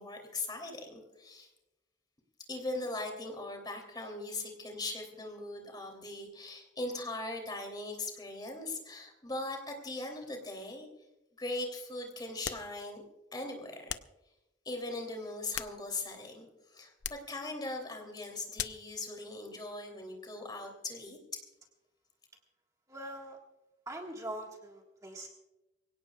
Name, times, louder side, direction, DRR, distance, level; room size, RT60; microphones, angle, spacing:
voice 1, 0.0-1.5 2.5-10.9 11.4-13.0 13.3-14.0 14.6-21.4, left 2 dB, 25° left, 3 dB, 3.0 m, -40 dB
sound 1, 12.4-12.8 13.9-14.2 15.3-16.2 17.0-17.3 18.6-18.9, left 10 dB, 70° left, 0.6 m, -40 dB
voice 2, 22.9-23.4 23.8-25.3, right 1 dB, 20° right, 0 dB, 1.7 m, -42 dB
24.5 x 17.5 x 2.4 m, 0.99 s
head